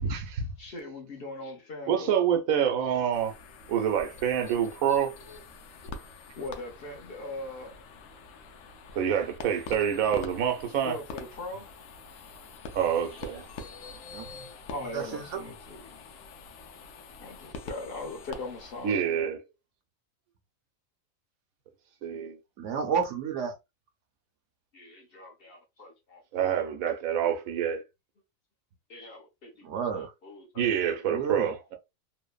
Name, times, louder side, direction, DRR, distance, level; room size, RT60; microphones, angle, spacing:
voice 1, 0.0-0.5 1.9-3.3 3.7-5.1 9.0-11.0 12.7-13.4 18.8-19.4 22.0-22.4 26.3-27.8 30.6-31.8, right 8 dB, 90° right, 1.1 m, -27 dB
voice 2, 0.6-2.2 4.4-4.5 6.4-7.7 10.8-11.7 13.1-14.0 14.7-16.0 17.2-19.3 24.7-26.7 28.9-29.7 29.9-30.6 31.0-31.1 31.5-31.6, left 2 dB, 50° left, 1.0 m, -41 dB
sound 1, 3.1-19.1, left 4 dB, 75° left, 0.9 m, -45 dB
voice 3, 14.1-14.5 14.9-15.4 22.6-23.6 29.6-30.1 31.1-31.5, right 7 dB, 70° right, 0.9 m, -31 dB
3.1 x 2.1 x 2.3 m
omnidirectional pair, 1.4 m